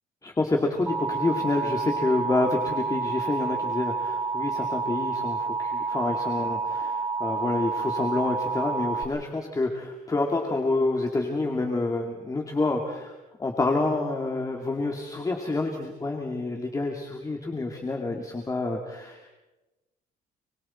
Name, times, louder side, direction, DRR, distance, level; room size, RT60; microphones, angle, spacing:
voice 1, 0.2-19.3, left 2 dB, 20° left, 2 dB, 2.6 m, -28 dB
Alarm, 0.9-9.0, right 4 dB, 10° right, 2.3 m, -29 dB
29.0 x 23.0 x 4.5 m, 1.1 s
cardioid pair, 110°, 17 cm